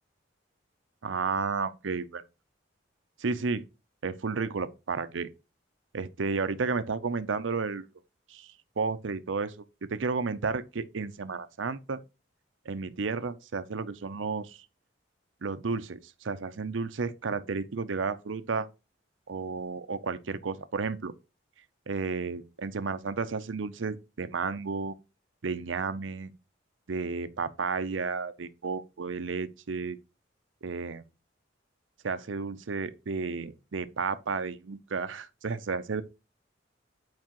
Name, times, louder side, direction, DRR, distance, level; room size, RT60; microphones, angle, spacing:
voice 1, 1.0-2.2 3.2-3.6 4.0-5.3 5.9-7.9 8.3-12.0 12.7-14.6 15.4-18.7 19.3-21.1 21.9-24.9 25.4-26.3 26.9-30.0 30.6-31.0 32.0-36.0, right 4 dB, 80° right, 0.6 m, -32 dB
9.4 x 4.8 x 3.0 m
head